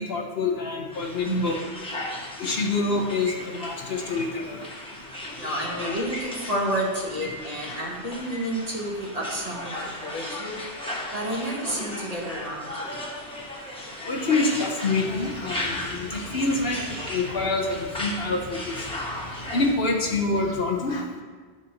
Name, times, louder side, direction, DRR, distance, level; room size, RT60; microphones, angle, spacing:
voice 1, 0.0-1.6 2.4-4.6 7.7-7.8 14.0-16.8 17.1-18.9 19.5-21.1, left 3 dB, 60° left, 1 dB, 1.0 m, -26 dB
sound 1, 0.9-19.7, left 1 dB, 5° left, 1.0 m, -36 dB
voice 2, 5.4-10.6 11.1-13.0, right 1 dB, 35° right, -3 dB, 1.3 m, -30 dB
Fixed-wing aircraft airplane, 15.1-20.6, left 2 dB, 75° left, 1.6 m, -43 dB
10.0 x 6.2 x 2.9 m, 1.5 s
omnidirectional pair, 1.2 m